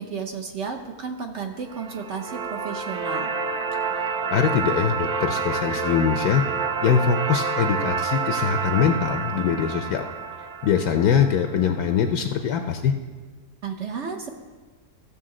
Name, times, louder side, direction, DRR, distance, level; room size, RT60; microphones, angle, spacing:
voice 1, 0.0-3.3 13.6-14.3, right 5 dB, 55° right, 3 dB, 0.9 m, -33 dB
sound 1, 1.7-11.8, right 5 dB, 75° right, 0.4 m, -28 dB
voice 2, 4.3-6.4 6.8-10.0 10.6-12.9, left 7 dB, 70° left, 6 dB, 1.0 m, -22 dB
15.0 x 6.8 x 3.7 m, 1.4 s
omnidirectional pair, 1.7 m